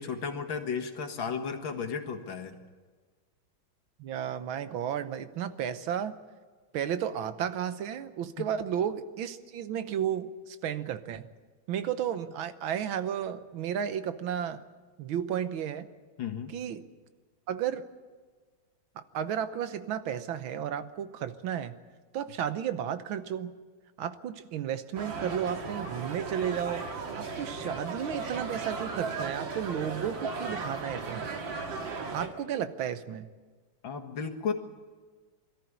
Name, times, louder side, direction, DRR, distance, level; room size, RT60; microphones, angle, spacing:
voice 1, 0.0-2.6 8.4-8.5 16.2-16.6 33.8-34.5, left 6 dB, 75° left, 5 dB, 2.4 m, -34 dB
voice 2, 4.0-6.2 6.7-11.2 11.7-14.6 15.0-15.9 16.5-16.8 17.5-17.9 19.0-21.7 22.1-23.5 24.0-26.9 27.2-31.3 32.1-33.3, right 9 dB, 90° right, 11 dB, 1.7 m, -33 dB
sound 1, 25.0-32.3, right 4 dB, 70° right, 2.6 m, -36 dB
22.0 x 13.5 x 9.6 m, 1.4 s
omnidirectional pair, 2.2 m